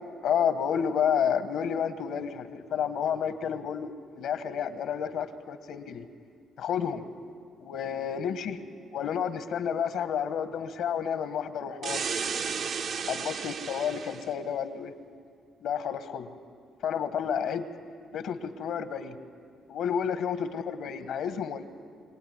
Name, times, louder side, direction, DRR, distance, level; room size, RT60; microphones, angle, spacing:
voice 1, 0.2-6.0 6.6-7.0 7.6-8.6 8.9-12.0 13.1-14.9 15.6-16.3 16.8-17.7 18.1-19.2 19.7-21.7, left 8 dB, 80° left, 10 dB, 1.5 m, -30 dB
sound 1, 11.8-14.3, right 6 dB, 65° right, 1.1 m, -33 dB
24.5 x 17.5 x 9.6 m, 2.2 s
cardioid pair, 90°, 0 cm